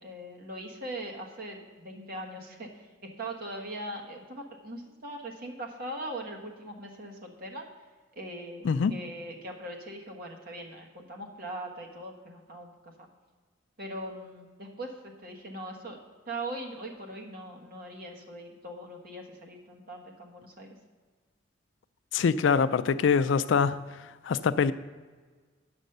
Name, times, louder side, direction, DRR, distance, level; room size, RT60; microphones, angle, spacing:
voice 1, 0.0-7.6 8.1-13.1 13.8-16.0 16.3-20.8 22.2-22.3 22.6-22.8, right 1 dB, 50° right, 1 dB, 1.4 m, -41 dB
voice 2, 22.1-23.8 24.3-24.7, left 6 dB, 65° left, 14 dB, 0.4 m, -24 dB
9.0 x 6.3 x 6.6 m, 1.4 s
head